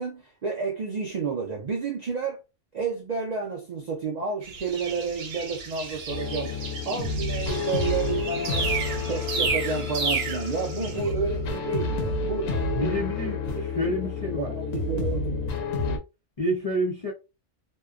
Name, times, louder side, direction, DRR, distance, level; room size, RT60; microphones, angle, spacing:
voice 1, 0.0-2.4 2.7-6.5 6.9-8.7 9.1-13.9 14.3-15.4, right 5 dB, 70° right, 0.4 m, -31 dB
sound 1, 4.4-11.1, right 4 dB, 85° right, 1.1 m, -32 dB
sound 2, 6.1-16.0, left 3 dB, 85° left, 1.0 m, -29 dB
voice 2, 12.7-14.5 16.4-17.1, left 1 dB, 50° left, 0.4 m, -29 dB
2.7 x 2.1 x 2.4 m
omnidirectional pair, 1.3 m